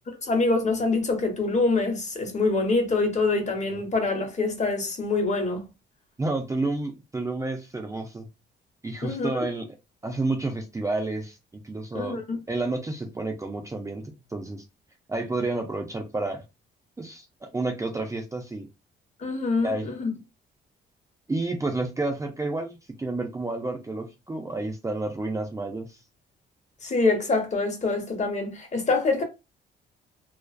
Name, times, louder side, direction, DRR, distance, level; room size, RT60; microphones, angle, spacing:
voice 1, 0.2-5.6 9.0-9.3 11.9-12.4 19.2-20.1 26.8-29.2, left 3 dB, 35° left, 0.9 m, -25 dB
voice 2, 6.2-8.3 8.8-9.7 10.0-11.4 11.6-12.2 12.5-14.6 15.1-16.4 17.0-18.7 19.6-19.9 21.3-26.0, right 2 dB, 15° right, 0.5 m, -30 dB
2.3 x 2.3 x 2.3 m
cardioid pair, 90°, 20 cm